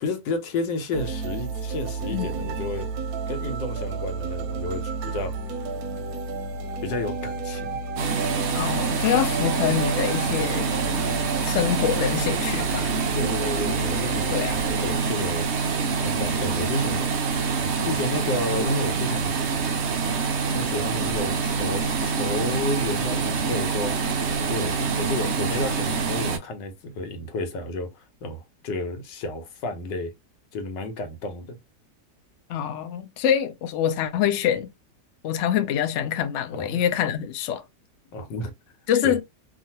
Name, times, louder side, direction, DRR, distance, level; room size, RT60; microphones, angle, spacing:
voice 1, 0.0-2.9 3.3-5.3 6.8-7.8 13.1-15.5 16.0-17.1 17.8-19.3 20.5-30.1 30.5-31.6 36.5-36.8 38.1-38.5 39.0-39.2, left 2 dB, 90° left, 1.4 m, -31 dB
sound 1, 0.9-15.0, right 3 dB, 70° right, 0.9 m, -32 dB
voice 2, 2.1-2.5 8.5-10.7 11.4-12.9 14.3-14.7 32.5-34.7 35.2-37.6 38.9-39.2, left 9 dB, 70° left, 0.7 m, -25 dB
sound 2, 8.0-26.4, right 5 dB, 85° right, 0.6 m, -26 dB
2.9 x 2.5 x 2.8 m
omnidirectional pair, 1.8 m